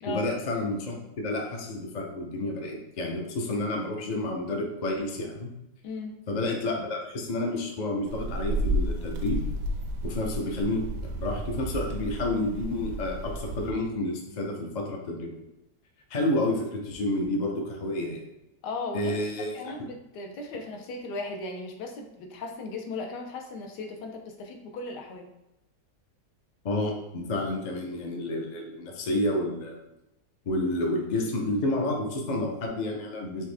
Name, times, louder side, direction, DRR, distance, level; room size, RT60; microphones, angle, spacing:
voice 1, 0.0-5.5 6.3-9.4 10.0-15.4 16.1-18.2 18.9-19.7 26.6-29.8 30.5-33.5, left 1 dB, 55° left, 0 dB, 0.4 m, -30 dB
voice 2, 5.8-6.2 18.6-19.2 19.5-25.3, left 3 dB, 75° left, 3 dB, 1.3 m, -37 dB
sound 1, 8.1-13.7, right 1 dB, 75° right, 1.2 m, -32 dB
4.6 x 3.4 x 3.4 m, 0.91 s
omnidirectional pair, 1.9 m